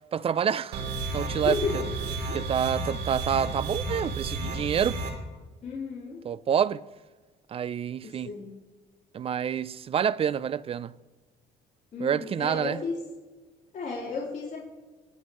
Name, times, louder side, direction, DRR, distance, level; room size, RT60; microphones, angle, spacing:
voice 1, 0.1-0.8 1.1-1.6 2.3-5.0 6.2-6.8 7.5-8.3 9.1-10.9 12.0-12.8, right 8 dB, 35° right, 0.4 m, -27 dB
sound 1, 0.7-5.1, right 3 dB, 80° right, 2.9 m, -32 dB
voice 2, 1.4-1.8 5.6-6.2 8.0-8.5 11.9-13.0 13.7-14.6, left 4 dB, 50° left, 4.0 m, -33 dB
28.0 x 9.4 x 3.1 m
cardioid pair, 110°, 17 cm